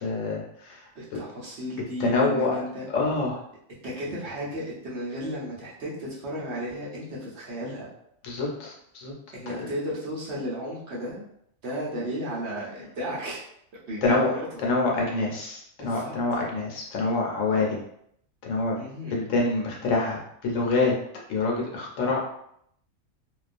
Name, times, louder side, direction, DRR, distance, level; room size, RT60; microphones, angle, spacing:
voice 1, 0.0-0.8 1.1-1.2 2.0-2.6 2.9-3.4 8.2-9.1 9.5-9.7 14.0-17.8 18.4-18.8 19.1-20.9 21.3-22.2, left 3 dB, 75° left, -1 dB, 0.9 m, -26 dB
voice 2, 1.0-2.9 3.8-7.9 9.3-11.2 11.6-13.4 13.9-14.5 15.8-16.2 18.8-19.1, equal, 60° right, -6 dB, 0.9 m, -34 dB
2.3 x 2.3 x 2.5 m, 0.72 s
omnidirectional pair, 1.4 m